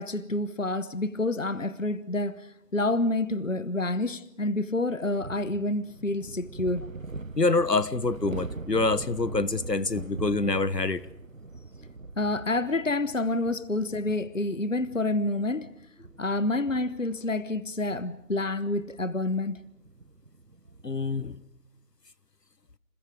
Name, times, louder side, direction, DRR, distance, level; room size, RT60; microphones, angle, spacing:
voice 1, 0.0-6.9 12.2-15.7 16.2-19.6, left 2 dB, 55° left, 1.1 m, -28 dB
sound 1, 5.2-21.0, right 3 dB, 55° right, 1.0 m, -43 dB
voice 2, 7.4-11.1 20.8-21.4, left 3 dB, 90° left, 1.4 m, -26 dB
30.0 x 28.5 x 5.0 m
figure-of-eight pair, 170°, 47 cm